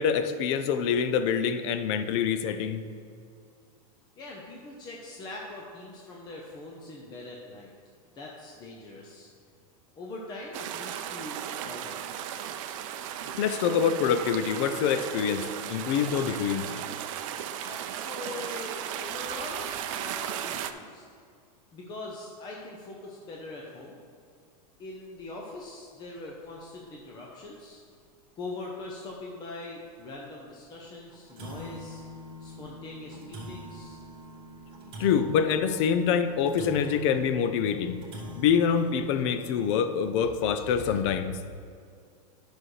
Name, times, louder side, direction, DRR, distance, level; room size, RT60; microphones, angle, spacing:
voice 1, 0.0-2.8 13.4-15.4 15.7-16.7 35.0-38.0 38.3-41.3, left 7 dB, 45° left, 10 dB, 0.6 m, -25 dB
voice 2, 4.2-7.7 8.1-9.3 9.9-12.0 17.5-21.0 21.7-24.0 24.8-27.8 28.4-32.0 32.4-34.0, left 2 dB, 20° left, -2 dB, 0.8 m, -42 dB
sound 1, 10.5-20.7, right 10 dB, 55° right, 0.5 m, -36 dB
sound 2, 25.0-25.2 25.6-25.7 26.2-26.3 27.3-27.4 27.9-28.0 28.5-28.6 29.1-29.2 30.2-30.4 30.8-30.9 31.1-40.2, left 1 dB, 25° right, 2.0 m, -44 dB
11.0 x 6.2 x 3.2 m, 2.3 s
supercardioid pair, 155°, 20 cm